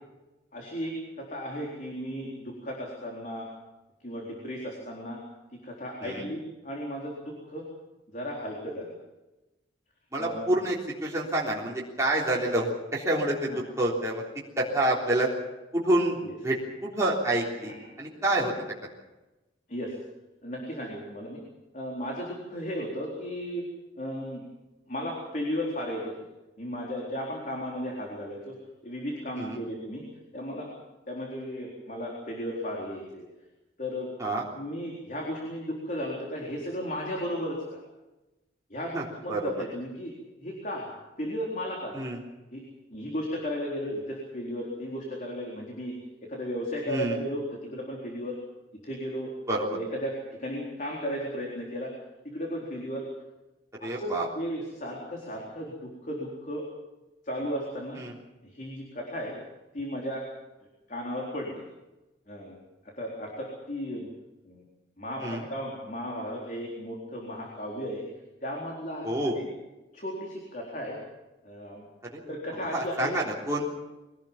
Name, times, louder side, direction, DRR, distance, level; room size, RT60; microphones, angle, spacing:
voice 1, 0.5-3.5 4.0-5.2 5.5-7.7 8.1-8.9 10.2-10.5 13.5-13.6 16.2-16.3 17.6-17.8 19.7-20.0 20.4-21.4 21.7-23.7 24.0-24.4 24.9-26.1 26.6-28.6 28.8-30.0 30.3-30.7 31.1-33.2 33.8-34.1 34.5-37.8 38.7-40.1 40.4-40.9 41.2-42.0 42.5-42.6 42.9-45.9 46.3-47.5 47.7-48.4 48.8-49.3 49.7-51.9 52.2-53.1 53.8-56.7 57.2-58.0 58.4-59.4 59.7-60.3 60.9-61.6 62.3-62.6 63.0-64.1 64.4-64.6 65.0-68.0 68.4-69.5 69.9-71.0 71.4-71.8 72.3-73.1, equal, 45° left, -1 dB, 4.0 m, -35 dB
voice 2, 10.1-13.5 13.8-14.2 14.6-15.3 15.7-16.2 16.4-16.6 16.9-18.5 29.4-29.6 34.2-34.4 38.9-39.4 41.9-42.2 46.9-47.2 49.5-49.7 53.8-54.3 58.0-58.1 65.2-65.4 69.0-69.4 72.1-72.3 72.7-73.8, right 1 dB, 15° right, -5 dB, 3.5 m, -28 dB
23.0 x 18.0 x 7.3 m, 1.0 s
head